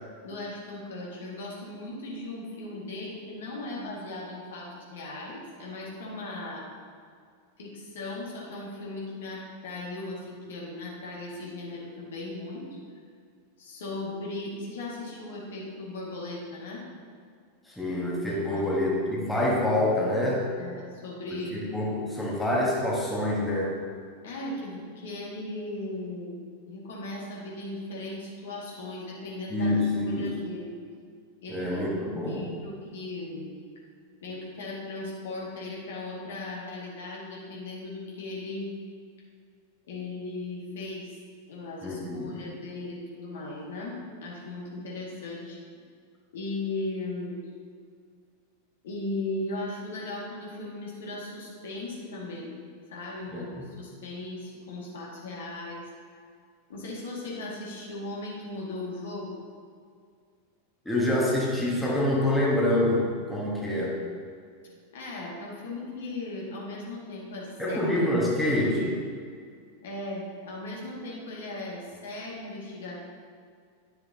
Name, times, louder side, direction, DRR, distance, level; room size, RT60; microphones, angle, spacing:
voice 1, 0.2-6.7 7.6-12.8 13.6-16.8 18.4-18.6 20.6-21.5 24.2-30.7 31.4-31.8 32.3-33.5 34.2-38.7 39.9-41.2 41.5-45.6 46.3-47.4 48.8-52.5 52.9-55.8 56.7-59.4 64.9-68.1 69.8-73.0, left 2 dB, 60° left, -4 dB, 2.0 m, -37 dB
voice 2, 17.7-20.4 21.3-23.8 29.5-30.4 31.5-32.6 41.8-42.4 53.3-53.4 60.8-64.0 67.6-69.0, left 1 dB, 5° left, -5 dB, 1.4 m, -26 dB
10.5 x 6.7 x 2.8 m, 2.1 s
figure-of-eight pair, 90°, 0 cm